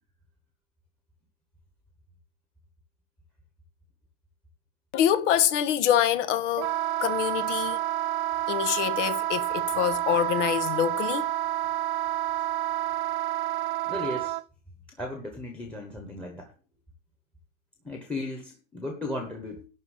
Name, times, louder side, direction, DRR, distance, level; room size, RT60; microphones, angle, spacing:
voice 1, 4.9-6.7 7.0-7.8 8.5-11.3, left 10 dB, 80° left, 1.4 m, -25 dB
Wind instrument woodwind instrument, 6.6-14.4, right 14 dB, 50° right, 0.5 m, -29 dB
voice 2, 13.9-14.4 15.0-16.5 17.8-19.7, left 1 dB, 5° left, 1.2 m, -35 dB
12.0 x 4.4 x 8.3 m
supercardioid pair, 180°, 35 cm